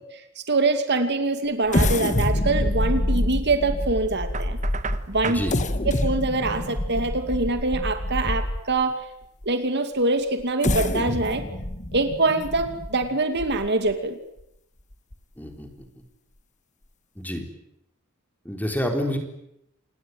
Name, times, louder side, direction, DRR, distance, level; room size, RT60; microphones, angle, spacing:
voice 1, 0.5-4.6 5.1-5.4 6.0-9.0 9.5-11.4 11.9-14.2, right 2 dB, 50° right, 8 dB, 2.4 m, -24 dB
sound 1, 1.7-8.8 9.4-9.5 10.4-13.9 14.4-14.5 14.9-15.1, left 1 dB, 35° left, 1.6 m, -26 dB
Knock, 4.3-5.5, right 5 dB, 35° right, 1.4 m, -33 dB
voice 2, 5.3-5.6 15.4-15.9 17.2-17.4 18.4-19.2, equal, 10° left, 5 dB, 3.9 m, -28 dB
27.5 x 20.0 x 9.4 m, 0.80 s
head